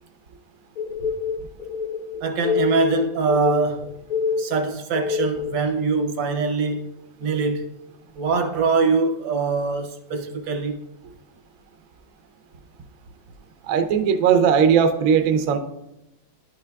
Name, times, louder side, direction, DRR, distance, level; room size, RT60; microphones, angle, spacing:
sound 1, 0.8-5.6, left 5 dB, 75° left, 0.8 m, -27 dB
voice 1, 2.2-3.9 4.4-6.9 7.2-7.7 8.1-10.8, right 4 dB, 85° right, 1.5 m, -23 dB
voice 2, 13.7-15.6, right 7 dB, 70° right, 0.8 m, -18 dB
11.0 x 5.9 x 2.3 m
omnidirectional pair, 2.0 m